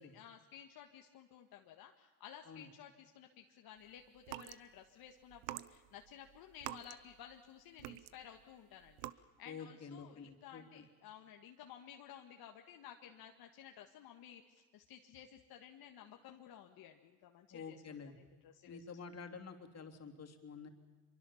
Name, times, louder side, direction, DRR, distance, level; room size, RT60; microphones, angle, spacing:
voice 1, 0.1-17.8 18.2-19.0, left 9 dB, 65° left, 3 dB, 1.7 m, -55 dB
sound 1, 4.2-4.6 5.3-7.5 7.8-8.4 8.9-9.1, right 17 dB, 90° right, 0.9 m, -46 dB
voice 2, 9.4-10.8 17.5-18.1 18.6-20.7, left 5 dB, 40° left, 4 dB, 3.2 m, -49 dB
24.5 x 23.5 x 7.2 m, 1.4 s
supercardioid pair, 90°, 39 cm